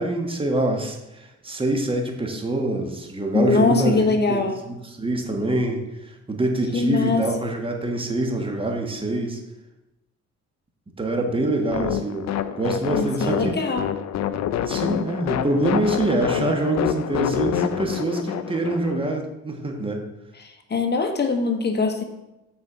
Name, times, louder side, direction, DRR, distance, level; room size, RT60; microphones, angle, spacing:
voice 1, 0.0-4.4 4.7-9.4 11.0-13.6 14.6-20.0, right 2 dB, 15° right, 2 dB, 1.4 m, -25 dB
voice 2, 3.3-4.6 6.7-7.2 12.9-13.8 20.4-22.0, left 3 dB, 35° left, 4 dB, 1.3 m, -22 dB
sound 1, 11.7-19.2, left 10 dB, 60° left, 0.6 m, -27 dB
7.0 x 4.4 x 6.8 m, 0.96 s
cardioid pair, 90°, 30 cm